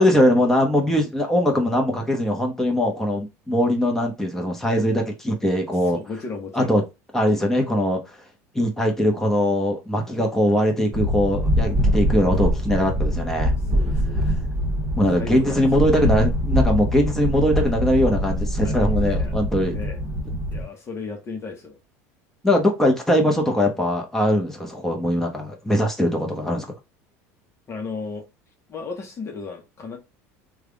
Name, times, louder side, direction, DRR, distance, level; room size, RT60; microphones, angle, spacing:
voice 1, 0.0-6.0 6.5-6.8 7.1-8.0 8.5-13.5 15.0-19.8 22.4-26.7, equal, 5° left, 1.0 m, -21 dB
voice 2, 5.9-6.7 10.1-10.2 13.7-14.3 15.2-15.7 18.6-19.3 19.7-20.0 20.5-21.8 27.7-28.3 28.7-30.0, left 4 dB, 35° left, 1.0 m, -35 dB
sound 1, 10.9-20.6, equal, 15° right, 1.5 m, -23 dB
3.3 x 2.4 x 3.9 m
supercardioid pair, 100°, 8 cm